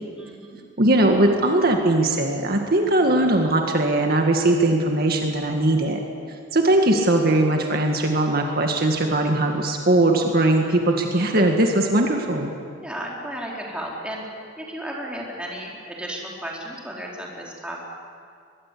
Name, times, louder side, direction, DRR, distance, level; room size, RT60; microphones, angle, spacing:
voice 1, 0.2-0.6 12.8-14.2 14.6-17.8, equal, 5° right, -3 dB, 4.5 m, -34 dB
voice 2, 0.8-6.0 6.5-12.5, right 1 dB, 55° right, 2 dB, 1.9 m, -20 dB
23.5 x 21.5 x 8.6 m, 2.3 s
head